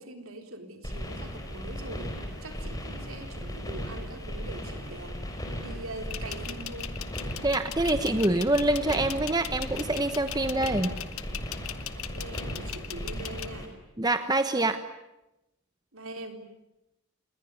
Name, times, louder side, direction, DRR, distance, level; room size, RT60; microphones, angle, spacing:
voice 1, 0.0-7.0 11.9-13.7 15.9-16.5, right 2 dB, 70° right, 5 dB, 3.9 m, -43 dB
sound 1, 0.8-13.7, equal, 15° left, 4.8 m, -37 dB
sound 2, 6.1-13.5, left 12 dB, 75° left, 1.4 m, -38 dB
voice 2, 7.4-10.9 14.0-14.8, right 2 dB, 20° right, 9 dB, 1.0 m, -26 dB
28.5 x 21.5 x 9.6 m, 0.92 s
head